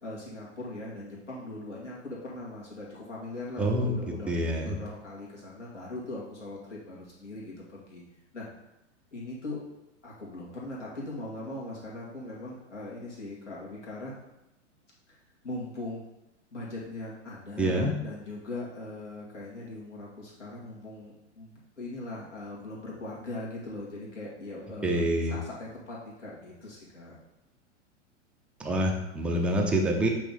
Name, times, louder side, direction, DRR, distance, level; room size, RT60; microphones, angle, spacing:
voice 1, 0.0-4.3 4.6-8.0 8.3-8.5 9.1-9.6 10.0-14.1 15.1-15.2 15.4-16.0 16.5-27.2, left 2 dB, 70° left, -5 dB, 2.3 m, -40 dB
voice 2, 3.6-4.0 4.3-4.8 17.6-17.9 24.8-25.4 28.6-30.1, right 1 dB, 5° right, 0 dB, 0.4 m, -26 dB
8.1 x 3.1 x 4.0 m, 0.91 s
figure-of-eight pair, 105°, 37 cm